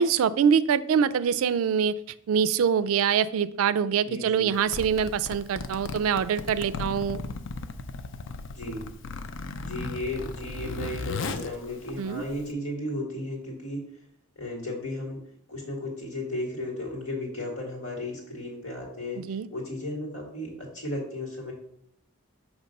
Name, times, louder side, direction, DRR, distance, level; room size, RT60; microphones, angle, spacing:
voice 1, 0.0-1.9 2.3-7.2 12.0-12.2 19.2-19.5, right 7 dB, 80° right, 16 dB, 0.3 m, -24 dB
voice 2, 4.1-4.5 8.5-8.8 9.6-13.8 14.4-15.2 15.5-19.2 19.5-21.5, left 1 dB, 85° left, 0 dB, 1.9 m, -34 dB
Zipper (clothing), 4.5-12.5, left 3 dB, 60° left, 0.4 m, -36 dB
6.5 x 3.0 x 5.2 m, 0.71 s
head